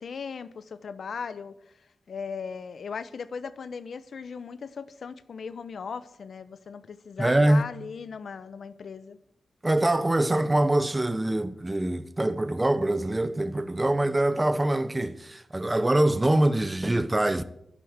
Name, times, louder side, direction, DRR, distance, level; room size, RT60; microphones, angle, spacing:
voice 1, 0.0-1.6 2.1-9.2, left 5 dB, 75° left, 0.9 m, -38 dB
voice 2, 7.2-7.6 9.6-17.4, right 1 dB, 20° right, 0.8 m, -24 dB
11.0 x 10.5 x 8.0 m
wide cardioid pair, 95°, 0 cm